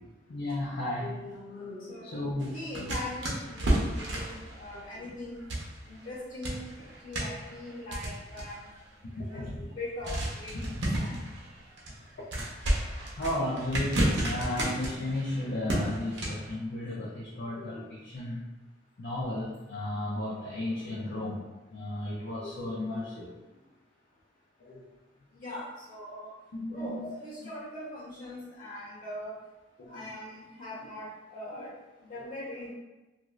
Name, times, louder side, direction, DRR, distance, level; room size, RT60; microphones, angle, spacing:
voice 1, 0.3-2.9 4.7-4.9 9.0-9.7 10.5-10.8 11.1-11.2 13.2-18.4 19.0-23.4 24.6-24.9 26.5-27.1 29.8-30.1, left 1 dB, 65° left, -5 dB, 0.5 m, -34 dB
voice 2, 1.9-5.4 5.9-8.7 9.3-11.1 21.1-21.2 25.4-26.3 26.7-29.3 29.9-31.7 32.0-32.7, left 1 dB, 50° left, -7 dB, 1.2 m, -41 dB
sound 1, 2.4-6.2 6.4-8.8 9.3-9.4 10.0-16.5, right 1 dB, 70° right, 0.7 m, -32 dB
3.0 x 2.5 x 2.4 m, 1.1 s
head